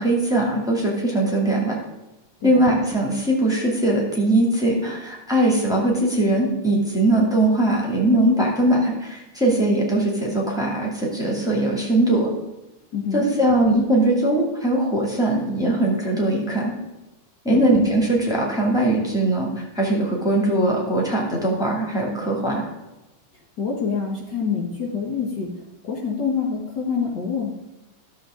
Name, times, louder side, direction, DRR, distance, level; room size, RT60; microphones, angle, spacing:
voice 1, 0.0-1.8 2.4-12.3 13.1-16.7 17.4-22.6, right 1 dB, ahead, -3 dB, 2.3 m, -20 dB
voice 2, 12.9-13.3 17.5-17.6 23.6-25.5 25.9-27.5, left 5 dB, 55° left, -2 dB, 1.9 m, -26 dB
14.0 x 7.2 x 3.8 m, 1.0 s
omnidirectional pair, 2.4 m